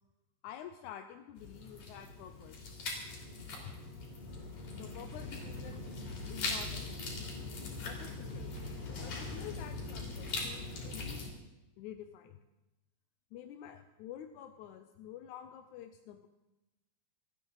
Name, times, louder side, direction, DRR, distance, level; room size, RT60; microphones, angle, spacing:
voice 1, 0.4-2.7 3.6-3.7 4.7-5.8 6.3-7.3 7.8-8.5 9.0-11.2 11.8-12.4 13.3-16.3, left 10 dB, 80° left, 7 dB, 1.8 m, -49 dB
sound 1, 1.4-11.3, left 3 dB, 60° left, 4.4 m, -41 dB
27.5 x 9.3 x 3.9 m, 1.0 s
omnidirectional pair, 3.9 m